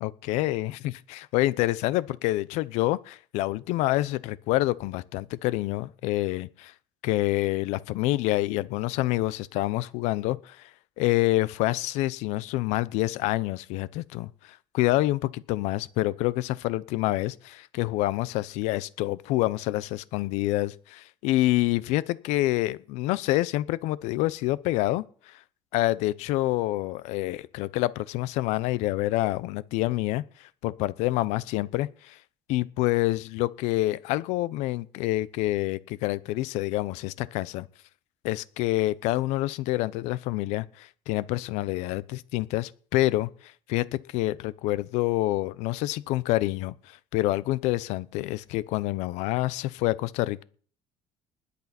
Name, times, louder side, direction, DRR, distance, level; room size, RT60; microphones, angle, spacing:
voice 1, 0.0-6.7 7.0-10.7 11.0-14.3 14.7-25.3 25.7-32.2 32.5-37.7 38.2-43.3 43.7-50.4, left 17 dB, 80° left, 0.8 m, -27 dB
20.5 x 8.4 x 4.4 m
cardioid pair, 150°, 12 cm